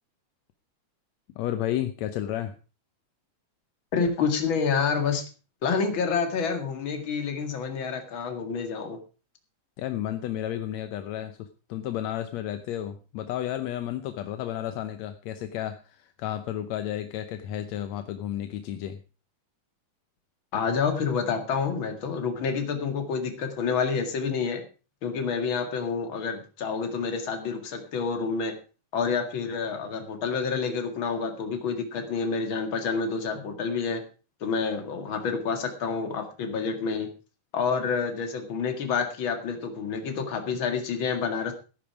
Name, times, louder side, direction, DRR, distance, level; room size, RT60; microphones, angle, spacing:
voice 1, 1.4-2.5 9.8-19.0, left 11 dB, 70° left, 9 dB, 1.9 m, -32 dB
voice 2, 3.9-5.2 5.6-9.0 20.5-24.6 25.0-28.5 28.9-34.0 34.4-37.1 37.5-41.5, left 5 dB, 45° left, 5 dB, 2.5 m, -28 dB
14.5 x 10.5 x 4.8 m, 0.35 s
omnidirectional pair, 3.6 m